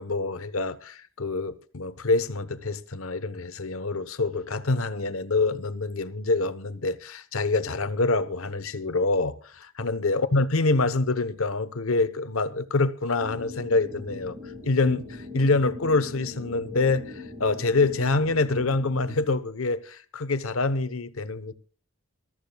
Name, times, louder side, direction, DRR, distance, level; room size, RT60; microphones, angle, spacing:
voice 1, 0.0-14.3 14.6-21.5, left 3 dB, 85° left, 1.0 m, -26 dB
sound 1, 13.2-19.2, left 3 dB, 30° right, 2.7 m, -41 dB
25.5 x 14.0 x 2.3 m
head